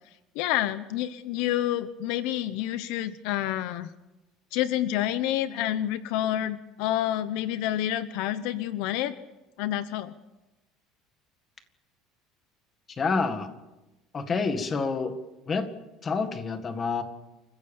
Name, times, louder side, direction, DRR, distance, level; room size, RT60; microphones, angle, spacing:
voice 1, 0.3-3.9 4.5-9.1 9.6-10.1, left 12 dB, 70° left, 13 dB, 1.0 m, -28 dB
voice 2, 12.9-13.5 14.1-15.2 15.5-15.7 16.0-17.0, left 4 dB, 20° left, 8 dB, 1.8 m, -28 dB
28.5 x 15.5 x 7.2 m, 1.0 s
cardioid pair, 165°, 0 cm